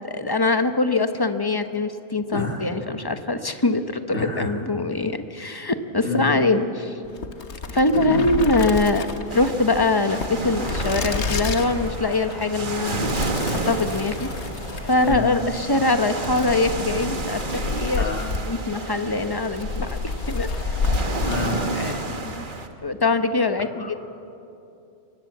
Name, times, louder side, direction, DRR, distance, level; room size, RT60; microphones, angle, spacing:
voice 1, 0.0-7.0 7.7-13.1 13.5-14.3 14.8-18.0 18.5-20.8 21.7-22.5 22.8-24.0, left 2 dB, 20° left, 8 dB, 1.0 m, -23 dB
voice 2, 2.3-2.6 4.1-4.6 6.0-6.3 7.9-8.2 15.0-15.3 18.0-18.3 21.2-21.6 23.7-24.0, left 4 dB, 55° left, 1 dB, 3.1 m, -28 dB
sound 1, 7.0-22.0, left 4 dB, 75° left, 1.5 m, -30 dB
sound 2, 9.3-22.7, right 3 dB, 45° right, 1.5 m, -31 dB
Wood, 11.0-17.8 19.5-21.2, equal, 85° right, 6.5 m, -40 dB
25.5 x 19.5 x 7.4 m, 2.7 s
omnidirectional pair, 1.2 m